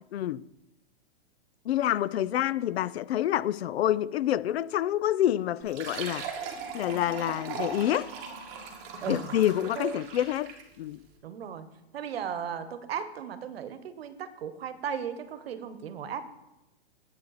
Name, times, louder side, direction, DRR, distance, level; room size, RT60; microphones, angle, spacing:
voice 1, 0.1-0.4 1.7-6.2 6.7-8.1 9.1-10.5 10.8-11.0, left 12 dB, 70° left, 0.5 m, -27 dB
Fill (with liquid), 5.6-10.8, right 5 dB, 25° right, 1.3 m, -39 dB
voice 2, 9.0-9.4 9.7-10.0 11.2-11.7 11.9-16.2, right 8 dB, 65° right, 1.1 m, -36 dB
9.4 x 8.5 x 4.0 m
hypercardioid pair, 170°, 33 cm